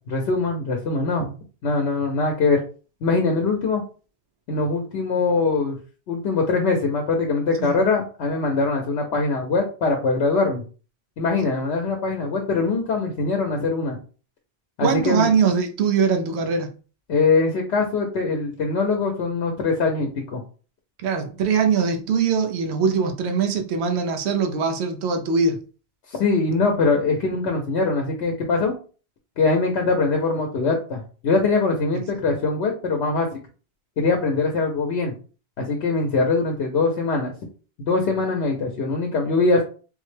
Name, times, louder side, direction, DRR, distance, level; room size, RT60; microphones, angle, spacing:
voice 1, 0.1-1.4 1.6-2.6 3.0-3.8 4.5-5.8 6.1-10.6 11.2-14.0 14.8-15.3 17.1-20.4 26.1-28.7 29.4-33.4 34.0-35.1 35.6-37.3 37.8-39.6, left 3 dB, 80° left, 0.9 m, -22 dB
voice 2, 14.8-16.7 21.0-25.6, right 5 dB, 80° right, 0.9 m, -22 dB
3.6 x 2.0 x 3.2 m
omnidirectional pair, 1.1 m